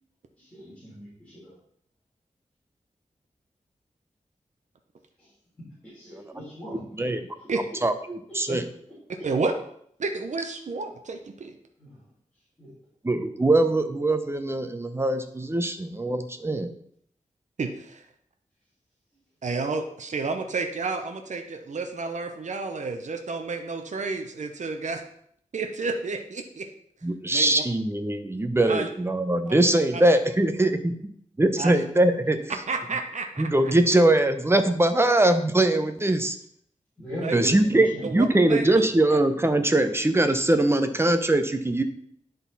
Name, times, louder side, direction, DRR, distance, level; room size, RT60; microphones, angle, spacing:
voice 1, 0.4-1.6 5.2-5.3 5.9-7.0 11.8-12.0 12.6-12.7 37.0-38.0, equal, 10° left, -10 dB, 3.5 m, -38 dB
voice 2, 6.7-7.3 7.8-8.6 13.0-16.7 27.0-30.8 31.4-32.5 33.4-36.4 37.3-41.8, right 1 dB, 20° right, 8 dB, 0.7 m, -22 dB
voice 3, 10.0-11.5 17.6-18.0 19.4-25.0 25.5-26.7 27.3-27.6 28.7-28.9 31.6-31.9 32.7-33.5 37.2-37.3 38.0-38.6, right 4 dB, 65° right, 5 dB, 0.8 m, -30 dB
10.5 x 4.0 x 4.1 m, 0.67 s
wide cardioid pair, 95°, 13 cm